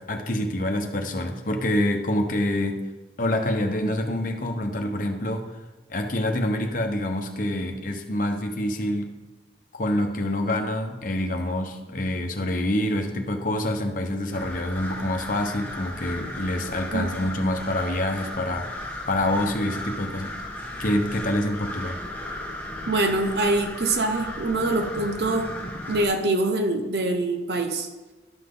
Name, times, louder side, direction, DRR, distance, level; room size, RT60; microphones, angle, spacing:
voice 1, 0.0-2.8 3.2-5.5 5.9-9.1 9.7-18.7 19.1-20.3 20.8-22.0, left 1 dB, 50° left, 4 dB, 0.9 m, -26 dB
sound 1, 14.3-26.1, left 1 dB, 10° left, 1.3 m, -36 dB
voice 2, 22.9-25.5 25.9-27.9, right 2 dB, 65° right, 5 dB, 0.9 m, -24 dB
12.0 x 5.8 x 3.8 m, 1.2 s
head